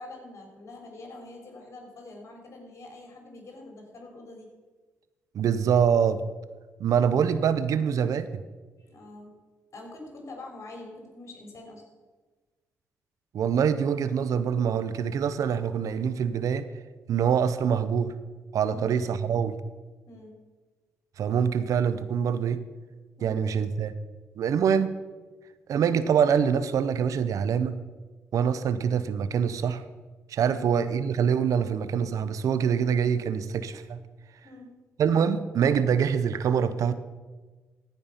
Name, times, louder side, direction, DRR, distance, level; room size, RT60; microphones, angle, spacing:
voice 1, 0.0-4.5 7.0-7.2 8.8-9.4 9.7-11.8 18.7-19.0 20.1-20.4 23.2-23.4 30.5-30.8 34.4-34.7, left 2 dB, 50° left, 2 dB, 3.7 m, -45 dB
voice 2, 5.3-6.2 6.8-8.4 13.3-16.7 17.1-18.1 18.5-19.6 21.2-22.6 23.2-23.9 24.4-24.9 25.7-27.8 28.3-29.8 30.3-34.0 35.0-36.9, right 7 dB, 70° right, 13 dB, 0.6 m, -25 dB
14.5 x 5.4 x 5.6 m, 1.3 s
supercardioid pair, 60°, 6 cm